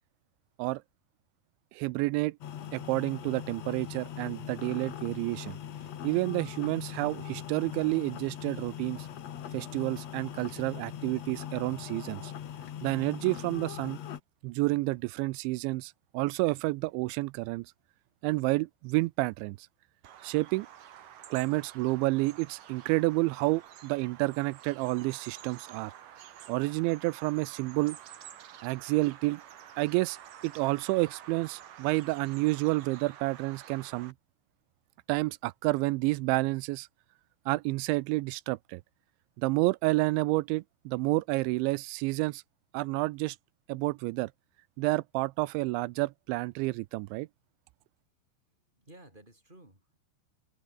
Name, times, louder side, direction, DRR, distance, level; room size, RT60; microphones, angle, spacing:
voice 1, 1.7-2.4 2.7-5.6 6.0-9.1 9.5-12.3 12.8-14.0 14.4-17.7 18.2-19.6 20.2-20.7 21.3-25.9 26.5-28.0 28.6-29.4 29.8-30.2 30.4-34.1 35.1-36.9 37.5-38.8 39.4-42.4 42.7-43.4 43.7-44.3 44.8-47.3, right 22 dB, 90° right, 3.0 m, -29 dB
sound 1, 2.4-14.2, left 10 dB, 60° left, 1.8 m, -41 dB
Bird vocalization bird call bird song, 20.0-34.1, right 10 dB, 55° right, 3.0 m, -50 dB
voice 2, 48.5-50.0, right 1 dB, 10° right, 7.2 m, -55 dB
omnidirectional pair, 5.2 m